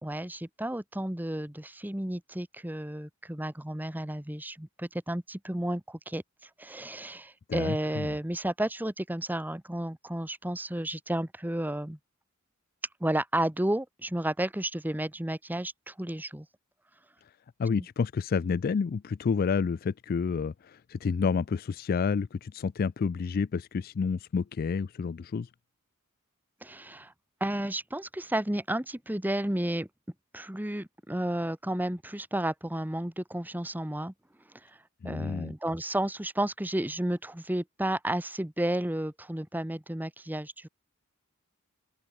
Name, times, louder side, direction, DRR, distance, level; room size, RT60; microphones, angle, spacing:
voice 1, 0.0-6.2 6.6-12.0 13.0-16.5 26.6-27.1 27.4-29.9 30.3-34.1 35.0-40.7, right 1 dB, 10° right, 1.1 m, -32 dB
voice 2, 7.5-8.2 17.6-25.5 35.0-35.5, left 5 dB, 45° left, 0.3 m, -29 dB
open air
head